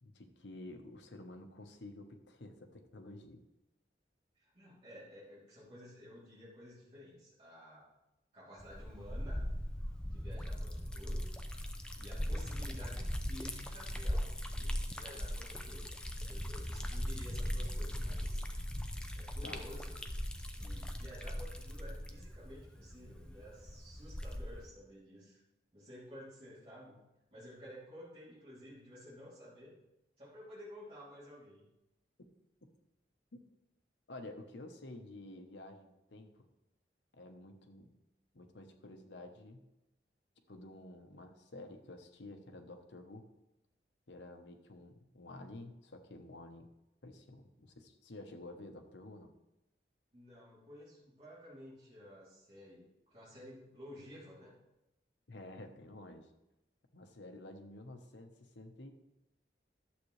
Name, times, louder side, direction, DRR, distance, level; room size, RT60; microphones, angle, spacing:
voice 1, 0.0-3.4 19.4-19.6 33.3-33.4 34.1-36.5 37.2-37.9 38.3-39.7 40.5-43.3 44.1-46.7 47.0-49.3 55.3-56.3 56.9-58.9, left 2 dB, 80° left, 6 dB, 1.0 m, -51 dB
voice 2, 4.4-7.9 8.3-9.4 10.0-11.3 12.0-15.9 16.2-18.5 19.1-20.0 20.5-25.4 25.7-27.0 27.3-29.8 30.2-31.6 50.1-54.5, equal, 35° right, -9 dB, 3.0 m, -53 dB
Liquid, 8.6-24.7, equal, 5° left, 0.5 m, -39 dB
11.5 x 7.4 x 3.2 m, 0.93 s
head